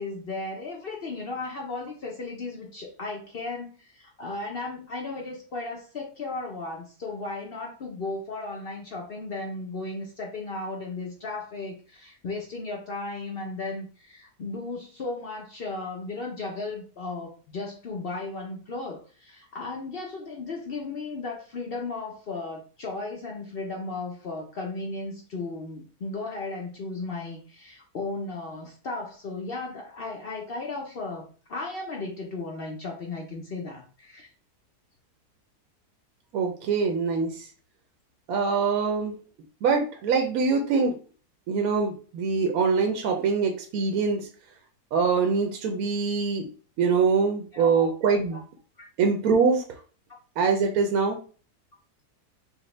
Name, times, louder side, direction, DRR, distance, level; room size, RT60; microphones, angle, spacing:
voice 1, 0.0-34.3 47.5-47.9 48.3-48.4 48.8-48.9, left 3 dB, 55° left, 0 dB, 0.7 m, -35 dB
voice 2, 36.3-37.5 38.3-39.1 39.6-40.9 41.5-44.3 44.9-46.5 46.8-48.4 49.0-49.6 50.4-51.2, right 5 dB, 70° right, 4 dB, 1.0 m, -24 dB
4.8 x 2.2 x 3.2 m, 0.39 s
omnidirectional pair, 1.6 m